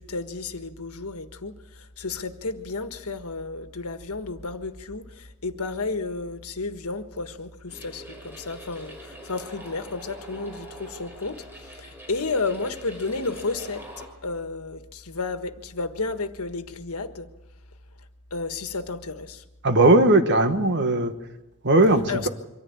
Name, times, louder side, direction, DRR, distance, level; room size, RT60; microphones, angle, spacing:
voice 1, 0.0-1.5 2.0-11.4 11.8-17.3 18.3-19.4 22.1-22.3, left 3 dB, 85° left, 8 dB, 1.5 m, -32 dB
sound 1, 7.7-14.1, right 1 dB, 10° right, 5.2 m, -44 dB
voice 2, 19.6-21.1 21.6-22.3, right 2 dB, 55° right, 8 dB, 1.6 m, -18 dB
24.5 x 14.5 x 8.7 m, 0.99 s
head